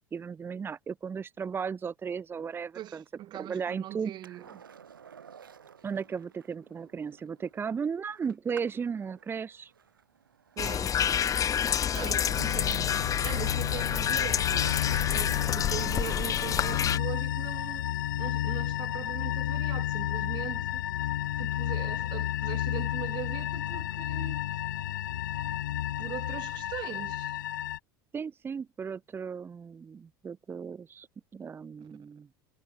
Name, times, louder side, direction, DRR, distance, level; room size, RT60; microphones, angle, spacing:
voice 1, 0.0-3.0 3.3-4.4 5.8-9.7 28.1-31.1 31.3-32.3, right 6 dB, 20° right, 0.8 m, -35 dB
voice 2, 2.7-4.6 10.6-11.0 11.9-17.9 18.2-20.8 21.4-24.4 26.0-27.4, right 14 dB, 40° right, 2.3 m, -41 dB
Skateboard, 4.2-15.1 17.7-17.8, right 7 dB, 75° right, 4.3 m, -55 dB
sound 1, 10.6-17.0, left 9 dB, 30° left, 1.7 m, -28 dB
sound 2, 12.3-27.8, left 12 dB, 65° left, 1.5 m, -32 dB
figure-of-eight pair, 75°, 11 cm